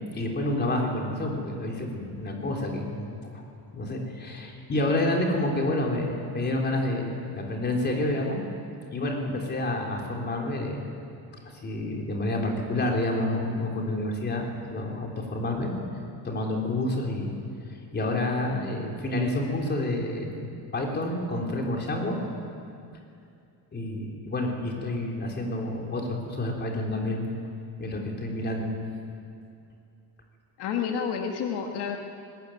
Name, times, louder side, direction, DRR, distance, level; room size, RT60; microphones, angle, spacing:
voice 1, 0.1-3.3 3.7-8.4 8.9-10.9 11.5-15.7 16.2-17.3 17.9-22.2 23.7-27.3 27.8-28.8, left 1 dB, 25° left, 0 dB, 3.8 m, -29 dB
voice 2, 30.6-32.0, left 7 dB, 75° left, 3 dB, 1.9 m, -29 dB
20.5 x 20.0 x 9.3 m, 2.5 s
cardioid pair, 170°, 40 cm